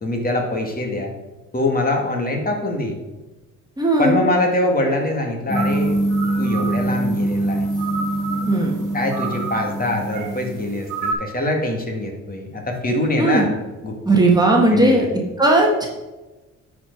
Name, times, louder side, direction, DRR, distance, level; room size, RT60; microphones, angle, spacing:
voice 1, 0.0-1.1 1.5-3.0 4.0-6.0 6.4-7.7 8.9-13.5 13.8-14.2 14.7-15.1, left 1 dB, 30° left, 2 dB, 2.0 m, -23 dB
voice 2, 3.8-4.2 8.5-8.7 13.2-13.5 14.0-15.1 15.4-15.9, right 2 dB, 15° right, -1 dB, 1.4 m, -16 dB
sound 1, 5.5-10.8, right 1 dB, 15° left, 1.0 m, -24 dB
sound 2, 5.5-11.1, right 5 dB, 85° right, 1.7 m, -32 dB
10.5 x 4.8 x 4.7 m, 1.1 s
cardioid pair, 90°, 30 cm